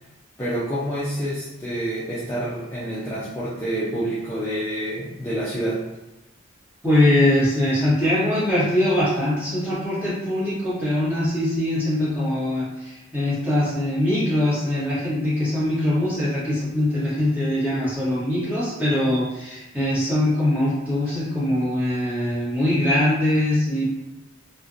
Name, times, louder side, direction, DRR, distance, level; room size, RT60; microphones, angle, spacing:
voice 1, 0.4-5.8, right 1 dB, 10° left, -9 dB, 0.3 m, -28 dB
voice 2, 6.8-23.8, left 1 dB, 10° right, -11 dB, 1.0 m, -22 dB
2.5 x 2.1 x 2.5 m, 0.94 s
head